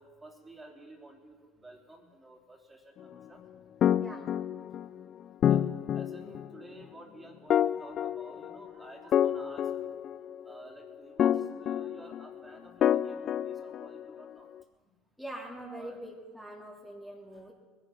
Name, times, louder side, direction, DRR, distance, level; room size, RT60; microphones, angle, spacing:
voice 1, 0.0-3.5 5.5-5.7 5.9-10.0 10.4-14.5 14.8-14.9 15.8-16.0 17.3-17.5, right 1 dB, 15° right, 0 dB, 3.4 m, -52 dB
sound 1, 3.8-5.0 5.4-6.6 7.5-8.7 9.1-10.5 11.2-12.4 12.8-14.2, left 10 dB, 50° left, 0.4 m, -28 dB
voice 2, 4.0-4.3 15.2-17.5, right 1 dB, ahead, -4 dB, 2.7 m, -43 dB
21.0 x 10.5 x 5.9 m, 1.5 s
hypercardioid pair, 75°, 0 cm